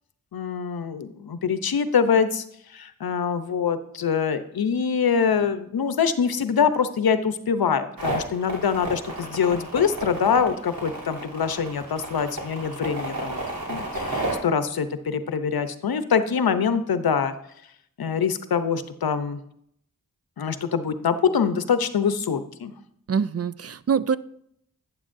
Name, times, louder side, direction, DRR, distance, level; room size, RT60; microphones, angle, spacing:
voice 1, 0.3-2.4 2.7-13.4 13.7-17.3 18.0-19.4 20.4-22.7, left 6 dB, 75° left, 11 dB, 0.7 m, -24 dB
sound 1, 8.0-14.4, right 2 dB, 70° right, 3.2 m, -31 dB
voice 2, 23.1-24.2, right 6 dB, 45° right, 16 dB, 0.4 m, -24 dB
11.0 x 9.3 x 2.6 m, 0.71 s
cardioid pair, 45°, 36 cm